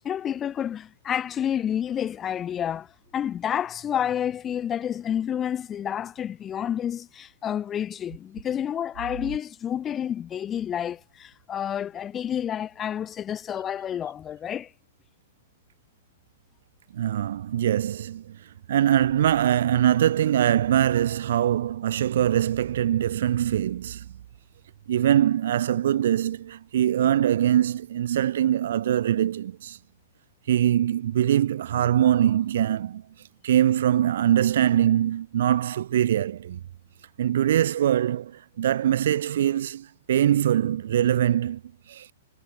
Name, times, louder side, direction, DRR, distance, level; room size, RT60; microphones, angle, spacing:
voice 1, 0.0-14.7, left 9 dB, 20° left, 2.9 m, -29 dB
voice 2, 16.9-18.4 18.7-24.1 24.9-29.8 30.5-33.0 33.4-36.6 37.2-41.6 41.9-42.1, right 11 dB, 65° right, 0.8 m, -23 dB
hypercardioid pair, 150°, 0 cm